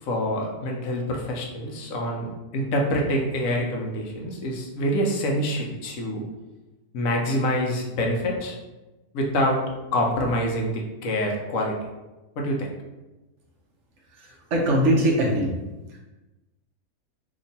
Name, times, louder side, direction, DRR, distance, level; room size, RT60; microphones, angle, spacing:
voice 1, 0.0-6.2 6.9-8.6 9.1-9.6 9.9-11.8 12.4-12.7, equal, 75° left, 0 dB, 1.0 m, -26 dB
voice 2, 14.1-15.6 15.9-16.0, right 1 dB, 65° right, -1 dB, 0.8 m, -22 dB
2.8 x 2.5 x 4.0 m, 1.1 s
omnidirectional pair, 1.5 m